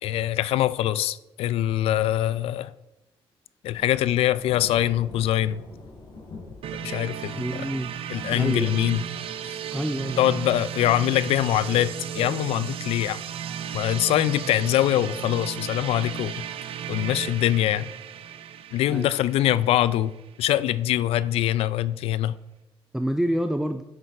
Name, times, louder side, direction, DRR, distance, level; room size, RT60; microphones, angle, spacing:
voice 1, 0.0-2.7 3.6-5.6 6.8-7.4 8.1-9.0 9.5-9.6 10.2-13.2 13.7-16.5 16.9-17.9 18.7-20.1 20.4-22.4, left 13 dB, 85° left, 0.4 m, -23 dB
Thunder / Rain, 3.7-10.1, left 3 dB, 55° left, 3.0 m, -45 dB
sound 1, 6.6-20.4, right 9 dB, 75° right, 0.6 m, -35 dB
voice 2, 7.4-7.9 8.3-8.8 9.7-10.4 14.1-14.3 18.9-19.1 22.9-23.8, equal, 5° right, 0.4 m, -28 dB
8.6 x 6.6 x 4.5 m
cardioid pair, 120°, 10 cm